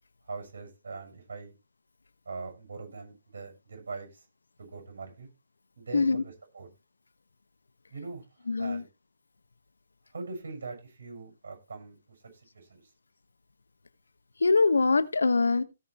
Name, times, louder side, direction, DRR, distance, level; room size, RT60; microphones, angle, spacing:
voice 1, 0.3-1.5 2.3-4.2 4.6-5.3 5.8-6.7 7.9-8.2 8.6-8.9 10.1-12.0 12.5-12.8, right 4 dB, 60° right, 7.1 m, -41 dB
voice 2, 5.9-6.2 8.5-8.8 14.4-15.6, left 3 dB, 70° left, 1.1 m, -23 dB
17.0 x 5.7 x 4.5 m
figure-of-eight pair, 135°, 0 cm